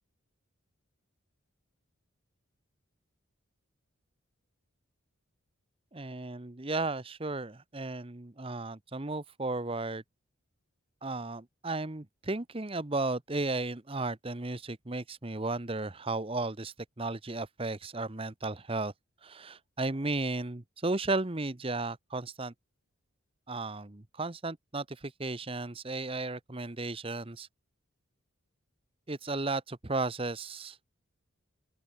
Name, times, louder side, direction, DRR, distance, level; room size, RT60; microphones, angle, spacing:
voice 1, 5.9-10.0 11.0-18.9 19.2-22.5 23.5-27.5 29.1-30.8, right 2 dB, 25° right, 0.9 m, -34 dB
open air
head